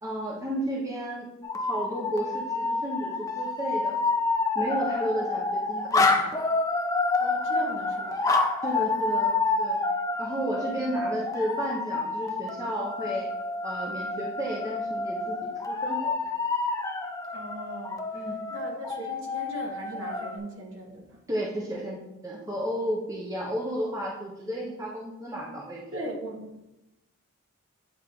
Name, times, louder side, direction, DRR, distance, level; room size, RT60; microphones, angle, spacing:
voice 1, 0.0-1.3 1.5-4.0 4.5-6.4 8.6-9.8 10.2-13.3 13.6-15.4 15.6-16.1 18.1-18.4 21.3-26.0, right 1 dB, 15° right, -3 dB, 0.8 m, -33 dB
sound 1, 1.4-20.4, left 3 dB, 15° left, 0.4 m, -28 dB
voice 2, 7.2-8.3 10.7-10.9 17.3-18.2 18.5-21.2 25.9-26.6, right 1 dB, 60° right, -1 dB, 1.4 m, -39 dB
8.9 x 3.6 x 3.1 m, 0.93 s
head